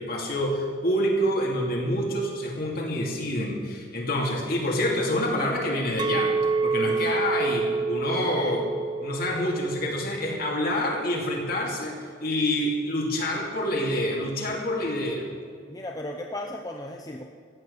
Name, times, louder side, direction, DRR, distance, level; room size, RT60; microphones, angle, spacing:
voice 1, 0.0-6.3 6.6-8.7 9.0-15.2, left 1 dB, 50° left, 0 dB, 2.6 m, -27 dB
Chink clink, 6.0-11.2, right 4 dB, 25° right, 0.4 m, -28 dB
voice 2, 6.9-7.2 8.2-8.5 15.7-17.2, left 1 dB, 20° left, 2 dB, 0.7 m, -36 dB
15.0 x 9.3 x 6.7 m, 2.1 s
head